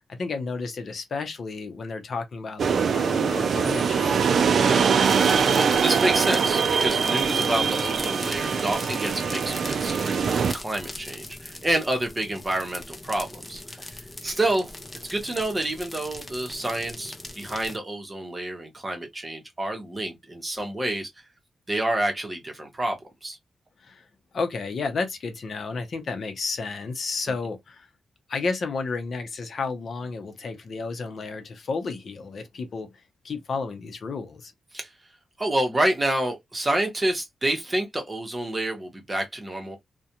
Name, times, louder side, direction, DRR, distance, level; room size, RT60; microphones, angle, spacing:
voice 1, 0.1-4.3 23.8-24.1 24.3-27.9 28.3-32.9 33.2-34.5, left 4 dB, 60° left, 0.6 m, -32 dB
sound 1, 2.6-10.5, right 6 dB, 65° right, 0.3 m, -23 dB
voice 2, 4.6-14.7 15.1-21.1 21.7-23.4 34.7-34.9 35.4-39.8, right 1 dB, 20° right, 0.9 m, -28 dB
sound 2, 5.0-17.8, left 2 dB, 20° left, 0.5 m, -40 dB
2.4 x 2.2 x 2.8 m
wide cardioid pair, 105°, 0 cm